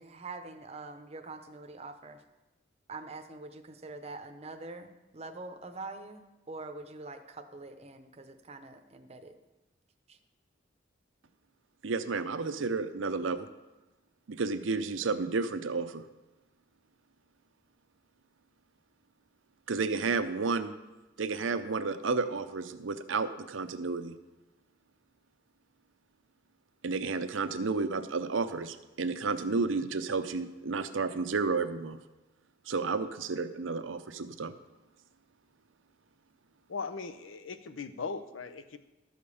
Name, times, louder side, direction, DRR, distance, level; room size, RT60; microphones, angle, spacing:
voice 1, 0.0-2.2 2.9-9.4 10.1-10.2, right 3 dB, 35° right, 7 dB, 0.7 m, -44 dB
voice 2, 11.8-13.5 14.3-16.1 19.7-20.7 21.2-24.2 26.8-32.0 32.7-34.5, right 4 dB, 85° right, 10 dB, 0.7 m, -31 dB
voice 3, 36.7-38.8, left 4 dB, 85° left, 11 dB, 0.7 m, -39 dB
12.5 x 5.1 x 6.9 m, 1.1 s
head